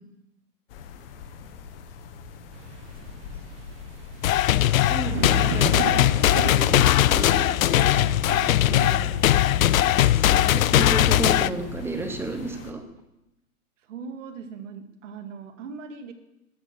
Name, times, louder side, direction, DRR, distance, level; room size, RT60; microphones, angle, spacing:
sound 1, 0.7-12.7, left 6 dB, 40° left, 1.5 m, -42 dB
sound 2, 2.5-12.7, right 9 dB, 20° right, 0.6 m, -37 dB
sound 3, 4.2-11.5, left 13 dB, 65° left, 0.6 m, -20 dB
voice 1, 4.5-7.3 7.7-7.9 8.6-9.1 10.1-12.8, right 2 dB, 5° right, 6 dB, 1.0 m, -33 dB
voice 2, 13.9-16.1, right 5 dB, 55° right, 6 dB, 2.3 m, -39 dB
13.5 x 8.9 x 8.1 m, 0.90 s
hypercardioid pair, 150°, 44 cm